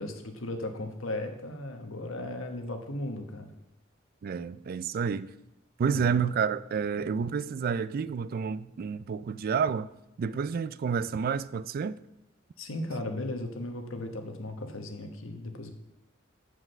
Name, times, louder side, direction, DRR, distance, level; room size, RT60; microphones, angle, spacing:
voice 1, 0.0-3.5 5.8-6.2 12.6-15.7, left 1 dB, 85° left, 1.2 m, -36 dB
voice 2, 4.2-5.3 5.8-9.9 10.2-12.0, right 6 dB, 45° right, 0.3 m, -29 dB
7.8 x 4.9 x 6.4 m
head